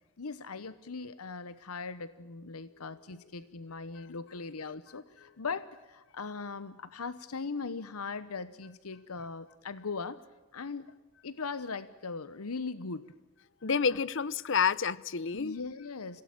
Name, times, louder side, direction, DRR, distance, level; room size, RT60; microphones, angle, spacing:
voice 1, 0.2-10.2 10.5-10.9 11.2-13.0 13.9-14.0 15.3-16.2, left 4 dB, 90° left, 1.0 m, -39 dB
voice 2, 13.6-15.6, left 6 dB, 55° left, 0.7 m, -29 dB
27.5 x 17.0 x 8.7 m
head